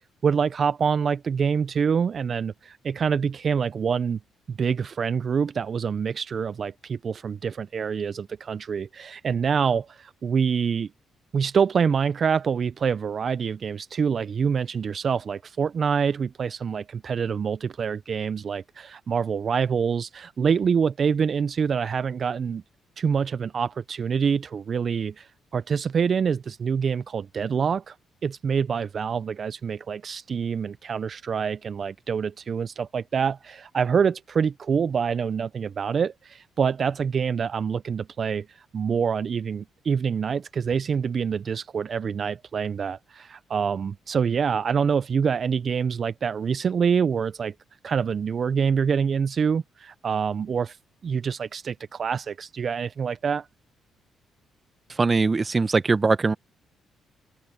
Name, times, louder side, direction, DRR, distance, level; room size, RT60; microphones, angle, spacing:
voice 1, 0.2-4.2 4.5-10.9 11.3-22.6 23.0-28.0 28.2-47.5 47.8-53.5, right 6 dB, 50° right, 0.4 m, -26 dB
voice 2, 54.9-56.3, right 4 dB, 30° right, 0.9 m, -21 dB
cardioid pair, 90°, 0 cm